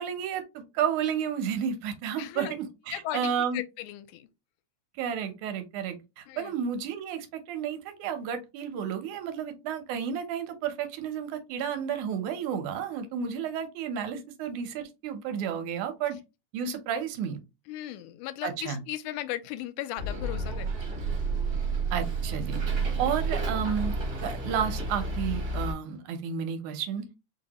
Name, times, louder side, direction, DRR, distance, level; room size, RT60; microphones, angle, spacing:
voice 1, 0.0-3.6 5.0-16.2 16.5-17.4 18.4-18.8 21.9-22.6 23.0-24.0 24.2-27.1, right 8 dB, 75° right, 2.2 m, -32 dB
voice 2, 2.2-2.5 2.9-4.3 6.3-6.5 17.7-20.9 23.0-23.2, left 13 dB, 85° left, 2.0 m, -37 dB
Bus, 20.0-25.7, right 3 dB, 45° right, 1.0 m, -30 dB
4.7 x 3.1 x 2.9 m
omnidirectional pair, 3.5 m